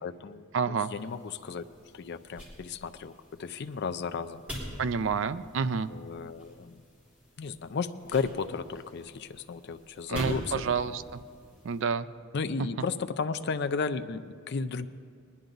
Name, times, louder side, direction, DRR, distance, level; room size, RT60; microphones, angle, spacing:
voice 1, 0.0-1.6 1.9-3.1 3.4-4.4 5.9-6.8 7.4-10.7 12.3-14.9, left 5 dB, 55° left, 10 dB, 0.4 m, -34 dB
voice 2, 0.5-0.9 4.8-5.9 10.1-11.2 11.6-12.1, right 5 dB, 65° right, 14 dB, 0.4 m, -29 dB
sound 1, 0.9-11.8, equal, 10° right, 3.8 m, -45 dB
20.0 x 11.0 x 3.9 m, 2.3 s
head